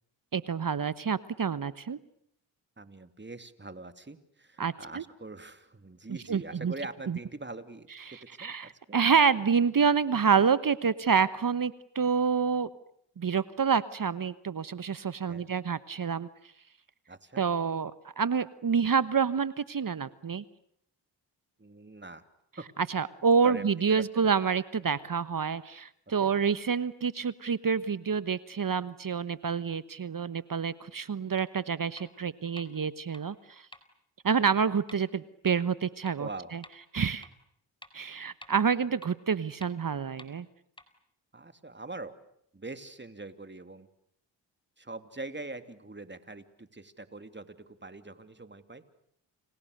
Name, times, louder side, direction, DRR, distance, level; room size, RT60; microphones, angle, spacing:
voice 1, 0.3-2.0 4.6-5.0 6.3-6.7 7.1-7.2 8.4-12.7 13.2-16.3 17.4-17.9 18.2-20.4 22.9-33.3 34.2-36.3 36.9-37.3 37.9-40.5, right 6 dB, 40° right, 15 dB, 1.2 m, -27 dB
voice 2, 2.8-7.9 8.2-9.0 15.3-15.5 17.1-17.4 21.6-22.2 22.6-22.7 23.4-24.3 26.2-26.3 36.2-36.5 41.3-42.1 42.5-43.9 44.8-48.8, right 2 dB, 20° right, 9 dB, 2.9 m, -43 dB
sound 1, 31.4-31.5 32.0-32.1 32.6-32.7 33.1-33.2 33.7-33.8 34.3-34.4 34.9-35.0 35.5-35.6 36.1-36.2 36.6-36.7 37.2-37.3 37.8-37.9 38.4-38.5 39.0-39.1 39.6-39.7 40.2-40.3 40.8-40.9, left 1 dB, 10° left, 4.5 m, -48 dB
30.0 x 29.0 x 6.7 m, 0.72 s
supercardioid pair, 40°, 49 cm